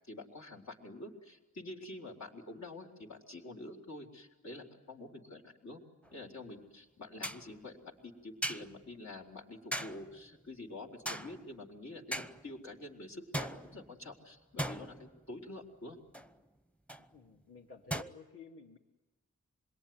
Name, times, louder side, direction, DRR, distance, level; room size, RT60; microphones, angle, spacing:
voice 1, 0.1-5.8 6.1-16.0, left 2 dB, 70° left, 1 dB, 4.1 m, -47 dB
sound 1, 6.0-6.1 7.2-7.5 8.4-8.8 9.7-10.2 11.1-11.6 12.1-12.5 13.3-14.1 14.6-15.4 16.1-16.3 16.9-17.1 17.9-18.0, right 1 dB, 5° left, 0.8 m, -39 dB
voice 2, 6.3-6.7 17.0-18.8, left 3 dB, 50° left, -3 dB, 2.5 m, -53 dB
27.0 x 22.0 x 9.5 m, 1.2 s
wide cardioid pair, 110°, 29 cm